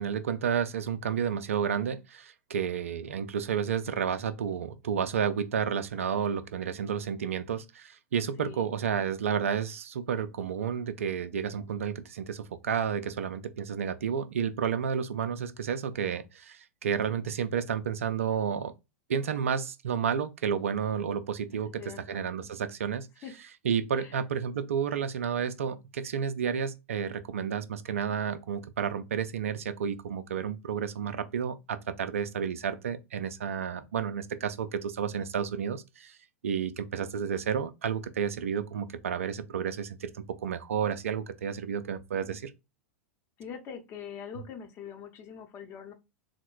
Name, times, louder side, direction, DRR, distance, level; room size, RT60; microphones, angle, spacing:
voice 1, 0.0-18.7 19.1-21.8 22.1-23.1 23.6-36.2 36.4-42.5, right 7 dB, 65° right, 0.4 m, -31 dB
voice 2, 8.4-9.1 21.5-22.2 23.2-23.4 23.9-24.1 43.4-45.9, left 8 dB, 30° left, 0.9 m, -43 dB
3.8 x 2.2 x 4.5 m
figure-of-eight pair, 95°, 8 cm